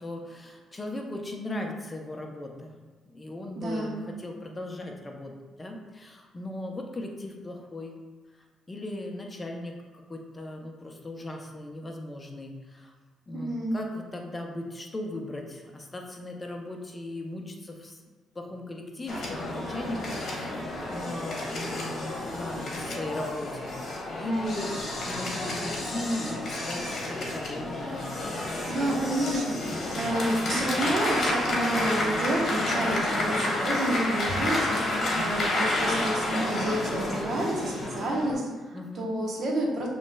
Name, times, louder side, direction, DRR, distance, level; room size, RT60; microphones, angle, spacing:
voice 1, 0.0-2.8 3.1-7.9 8.3-12.9 13.3-18.0 18.3-23.8 24.2-28.1 34.7-35.2 38.7-39.2, left 1 dB, 25° left, 1 dB, 0.6 m, -37 dB
voice 2, 3.6-4.1 13.3-13.8 28.7-34.8 35.2-39.9, right 1 dB, 55° right, -2 dB, 0.9 m, -29 dB
sound 1, 19.1-38.3, left 1 dB, 55° left, 1.1 m, -30 dB
7.0 x 3.1 x 2.2 m, 1.3 s
cardioid pair, 90°, 0 cm